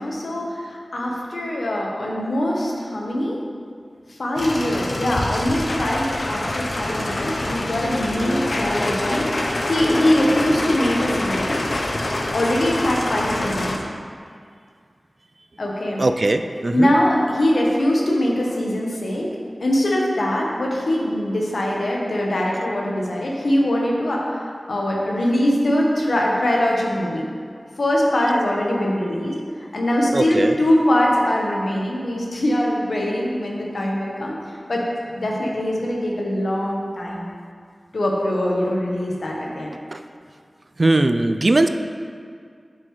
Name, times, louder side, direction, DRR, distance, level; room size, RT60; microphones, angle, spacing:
voice 1, 0.0-3.4 4.1-9.3 9.7-11.6 12.3-13.7 15.6-16.0 16.7-19.3 19.6-27.2 27.8-34.8 35.1-37.3 37.9-39.7, left 1 dB, 80° left, -2 dB, 1.2 m, -22 dB
sound 1, 4.4-13.8, left 1 dB, 60° left, 0.6 m, -25 dB
voice 2, 16.0-16.9 30.1-30.6 39.9-40.0 40.8-41.7, right 2 dB, 50° right, 8 dB, 0.3 m, -19 dB
7.4 x 6.3 x 3.2 m, 2.2 s
wide cardioid pair, 70°, 0 cm